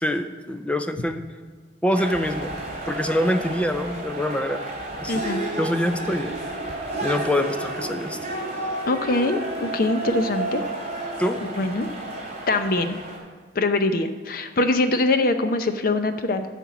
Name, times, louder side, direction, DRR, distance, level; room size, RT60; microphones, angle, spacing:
voice 1, 0.0-1.2 1.8-2.5 2.9-4.6 5.0-5.2 5.6-6.4 7.0-8.2 11.2-11.5, left 1 dB, 5° left, 8 dB, 0.5 m, -25 dB
sound 1, 1.9-13.2, right 1 dB, 40° right, 3.4 m, -31 dB
voice 2, 5.1-5.4 8.9-10.6 11.5-11.9 12.5-13.0 13.6-16.5, left 2 dB, 55° left, 9 dB, 0.7 m, -23 dB
12.0 x 4.5 x 7.1 m, 1.4 s
head